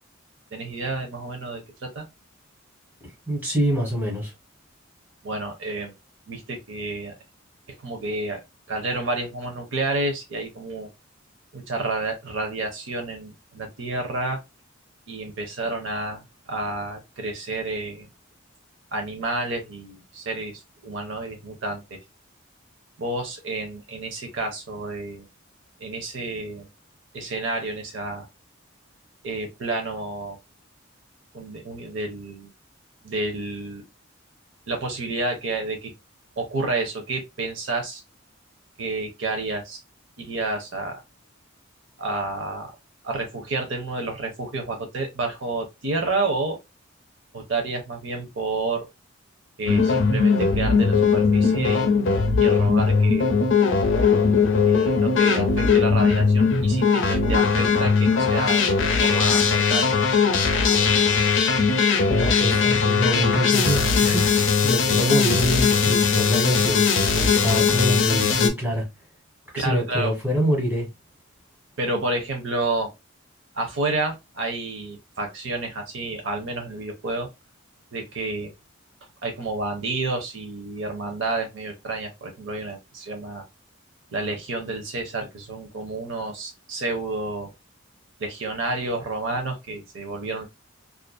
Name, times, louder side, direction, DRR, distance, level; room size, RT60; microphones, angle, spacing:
voice 1, 0.5-2.0 5.2-5.9 6.3-7.1 7.8-10.9 11.5-14.4 15.1-18.1 18.9-22.0 23.0-25.3 25.8-26.7 27.1-28.3 29.2-30.4 31.3-32.5 33.0-33.9 34.7-35.9 36.4-38.0 38.8-39.8 40.2-41.0 42.0-42.7 43.0-46.6 47.3-48.9 49.6-52.0 52.4-53.4 54.7-59.9 69.6-70.1 71.8-72.9 73.5-77.3 77.9-78.5 79.2-83.4 84.1-87.5 88.2-90.4, right 2 dB, 65° right, 0.5 m, -30 dB
voice 2, 3.3-4.3 62.1-68.8 69.5-70.9, equal, 10° right, 1.3 m, -25 dB
sound 1, 49.7-68.5, left 5 dB, 60° left, 0.5 m, -20 dB
2.5 x 2.4 x 2.2 m
head